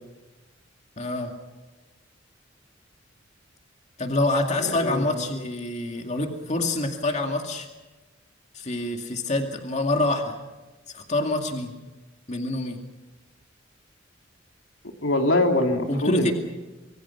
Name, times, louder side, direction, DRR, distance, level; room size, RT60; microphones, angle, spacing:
voice 1, 1.0-1.3 4.0-7.7 8.5-10.4 10.9-11.7 12.3-12.8 15.9-16.3, left 2 dB, 35° left, 4 dB, 2.3 m, -26 dB
voice 2, 4.6-5.2 15.0-16.3, left 1 dB, 80° left, 3 dB, 3.0 m, -23 dB
26.0 x 23.0 x 6.0 m, 1.2 s
head